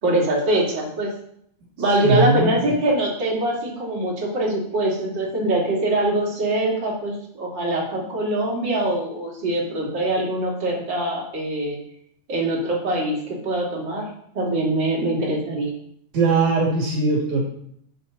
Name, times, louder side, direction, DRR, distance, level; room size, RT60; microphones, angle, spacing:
voice 1, 0.0-1.1 1.8-11.8 12.3-14.1 14.3-15.7, right 1 dB, 35° right, -3 dB, 3.2 m, -23 dB
voice 2, 2.0-2.7 16.1-17.4, right 3 dB, 60° right, -2 dB, 3.3 m, -20 dB
11.5 x 8.1 x 4.0 m, 0.68 s
omnidirectional pair, 4.1 m